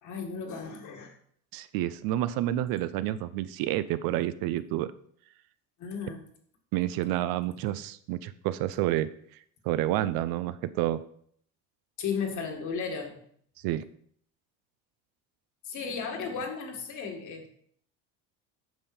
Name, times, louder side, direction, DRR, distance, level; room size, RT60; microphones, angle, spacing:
voice 1, 0.0-1.2 5.8-6.2 12.0-13.2 15.6-17.5, left 5 dB, 50° left, 3 dB, 2.1 m, -35 dB
voice 2, 1.5-4.9 6.7-9.1 9.6-11.0 13.6-13.8, right 14 dB, 65° right, 14 dB, 0.6 m, -29 dB
8.9 x 5.7 x 4.3 m, 0.62 s
supercardioid pair, 110°, 38 cm